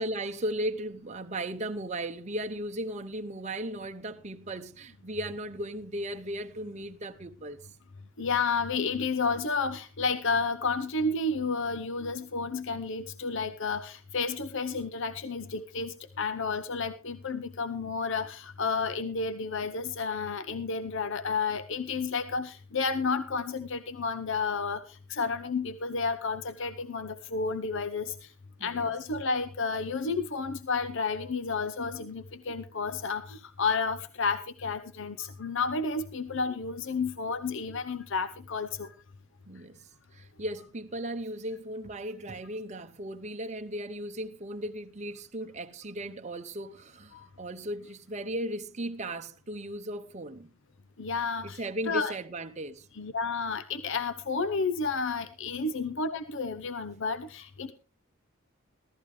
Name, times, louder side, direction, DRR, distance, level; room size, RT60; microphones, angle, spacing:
voice 1, 0.0-7.6 28.6-28.9 39.5-39.8 40.1-50.5 51.4-52.9, right 1 dB, 35° right, 0.9 m, -36 dB
voice 2, 8.2-28.3 28.6-38.9 47.1-47.3 51.0-52.1 52.9-57.7, left 4 dB, 60° left, 0.8 m, -31 dB
15.5 x 14.0 x 3.3 m
head